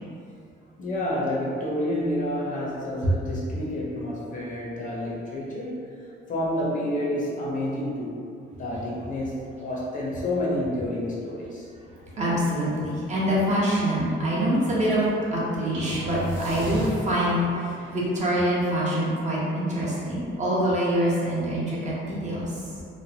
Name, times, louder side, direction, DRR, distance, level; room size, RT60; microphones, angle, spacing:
voice 1, 0.8-6.0 6.3-8.2 8.6-11.7 17.8-17.9 20.2-20.3, left 1 dB, 40° left, -5 dB, 0.6 m, -29 dB
voice 2, 11.9-22.5, equal, 35° right, -7 dB, 0.7 m, -25 dB
sound 1, 15.7-17.5, right 1 dB, 75° right, 0.6 m, -33 dB
2.9 x 2.1 x 2.7 m, 2.4 s
cardioid pair, 140°, 20 cm